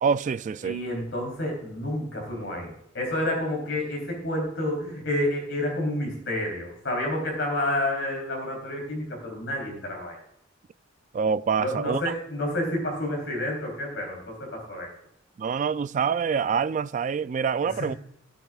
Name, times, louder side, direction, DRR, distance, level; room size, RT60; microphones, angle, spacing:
voice 1, 0.0-0.8 11.1-12.0 15.4-17.9, right 6 dB, 40° right, 0.3 m, -26 dB
voice 2, 0.6-10.2 11.6-14.9 17.8-18.0, left 1 dB, 65° left, 3.5 m, -29 dB
16.5 x 7.1 x 2.4 m
head